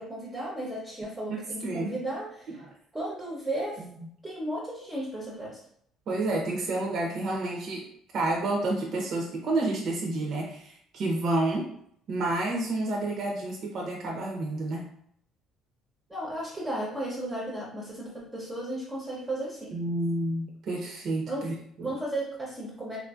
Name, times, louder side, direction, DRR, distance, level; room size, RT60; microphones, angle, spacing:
voice 1, 0.0-2.6 2.9-3.8 4.2-5.6 16.1-19.8 21.3-21.5 21.8-23.0, right 1 dB, 10° right, -6 dB, 0.7 m, -34 dB
voice 2, 1.3-1.9 2.5-2.7 3.8-3.9 6.1-7.8 8.1-11.7 12.1-14.9 19.7-21.9, right 2 dB, 50° right, -1 dB, 0.6 m, -30 dB
3.4 x 2.5 x 2.3 m, 0.67 s
cardioid pair, 140°, 0 cm